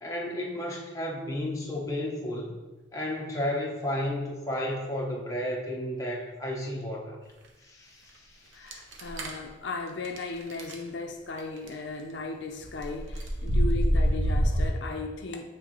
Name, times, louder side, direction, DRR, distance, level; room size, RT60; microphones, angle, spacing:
voice 1, 0.0-2.6 2.9-7.2 7.6-9.0, left 1 dB, 15° left, -2 dB, 0.8 m, -33 dB
voice 2, 8.5-15.4, left 3 dB, 65° left, 2 dB, 0.5 m, -36 dB
sound 1, 8.7-9.4 10.0-10.2 10.5-10.7 11.4-11.7 12.6-14.7, equal, 80° right, 0.8 m, -25 dB
9.0 x 3.7 x 3.0 m, 1.1 s
head